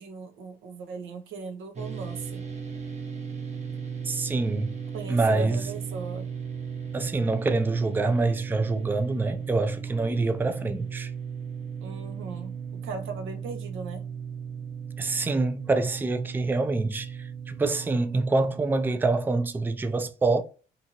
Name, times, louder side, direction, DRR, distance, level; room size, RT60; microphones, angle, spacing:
voice 1, 0.0-2.4 4.9-6.3 11.8-14.1, right 4 dB, 80° right, 0.7 m, -38 dB
sound 1, 1.7-19.2, right 7 dB, 35° right, 0.8 m, -36 dB
voice 2, 4.0-4.7 5.1-5.6 6.9-11.1 15.0-20.4, right 3 dB, 10° right, 0.3 m, -26 dB
2.7 x 2.5 x 2.8 m
cardioid pair, 90°, 20 cm